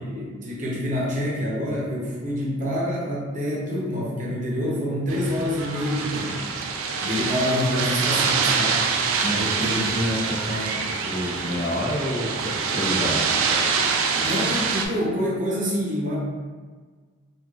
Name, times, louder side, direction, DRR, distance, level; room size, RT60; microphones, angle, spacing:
voice 1, 0.0-6.3 7.0-8.9 9.6-9.7 14.2-16.1, equal, 40° right, -5 dB, 0.7 m, -26 dB
sound 1, 5.1-14.9, right 5 dB, 90° right, 0.3 m, -25 dB
voice 2, 9.2-13.2, equal, 50° left, -5 dB, 0.7 m, -28 dB
3.2 x 2.3 x 2.3 m, 1.5 s
head